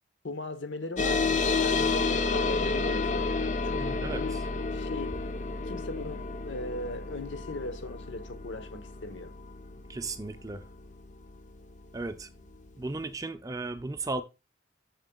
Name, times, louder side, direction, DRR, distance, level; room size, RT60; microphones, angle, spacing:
voice 1, 0.2-3.3 3.6-4.4 4.7-5.2 5.7-9.3, left 2 dB, 80° left, 0.9 m, -38 dB
sound 1, 1.0-11.9, left 3 dB, 40° left, 0.4 m, -31 dB
voice 2, 3.7-4.4 9.9-10.7 11.9-12.3 12.8-14.2, right 3 dB, 20° right, 0.4 m, -35 dB
8.9 x 7.2 x 2.2 m
head